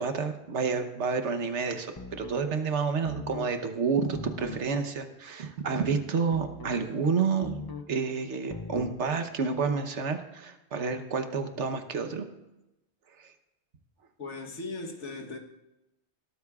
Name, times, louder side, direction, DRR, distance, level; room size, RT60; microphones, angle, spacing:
voice 1, 0.0-7.6 7.9-12.3 13.2-13.3, right 5 dB, 80° right, 1.3 m, -29 dB
sound 1, 2.0-2.5 3.0-3.5 4.1-4.7 6.3-6.9 7.4-7.9 8.5-9.0, left 4 dB, 30° left, 0.4 m, -40 dB
voice 2, 14.2-15.4, left 3 dB, 85° left, 1.5 m, -38 dB
20.0 x 12.5 x 2.4 m
omnidirectional pair, 1.2 m